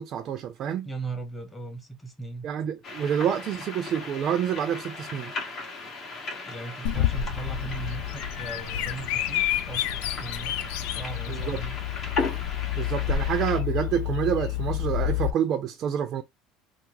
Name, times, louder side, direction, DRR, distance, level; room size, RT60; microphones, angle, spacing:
voice 1, 0.0-0.9 2.4-5.3 11.3-11.6 12.8-16.2, right 9 dB, 50° right, 0.5 m, -28 dB
voice 2, 0.8-2.5 6.4-11.8, right 3 dB, 5° left, 1.1 m, -38 dB
sound 1, 2.8-13.6, left 3 dB, 45° left, 1.3 m, -37 dB
Bird vocalization bird call bird song, 6.8-15.3, left 12 dB, 80° left, 0.3 m, -29 dB
3.4 x 2.0 x 3.0 m
supercardioid pair, 105°, 0 cm